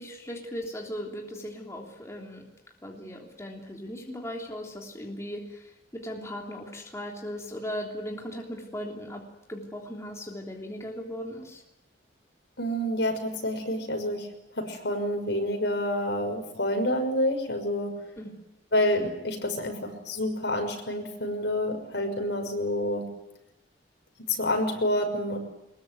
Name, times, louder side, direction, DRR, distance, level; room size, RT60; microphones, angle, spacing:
voice 1, 0.0-2.4 2.8-9.2 9.5-11.6 18.2-18.3, equal, 15° left, -1 dB, 3.4 m, -38 dB
voice 2, 12.6-14.3 14.5-17.9 18.7-23.1 24.3-25.4, left 1 dB, 65° left, 5 dB, 6.1 m, -28 dB
23.0 x 22.0 x 9.4 m, 0.87 s
head